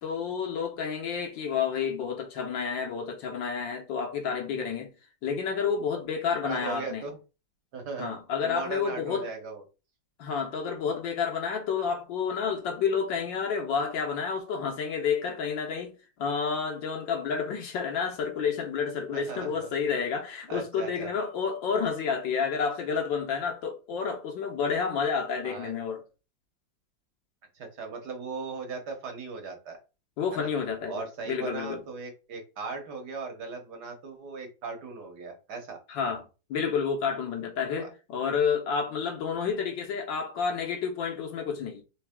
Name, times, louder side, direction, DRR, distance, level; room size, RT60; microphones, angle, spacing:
voice 1, 0.0-4.9 5.2-7.1 8.0-9.3 10.2-26.0 30.2-31.8 35.9-41.8, left 6 dB, 80° left, 1.7 m, -30 dB
voice 2, 6.4-7.2 7.7-9.6 19.1-19.7 20.5-21.1 25.4-25.7 27.5-29.8 30.3-30.5 30.9-35.8 37.7-37.9, right 4 dB, 60° right, 1.6 m, -38 dB
4.0 x 3.4 x 3.6 m
omnidirectional pair, 2.0 m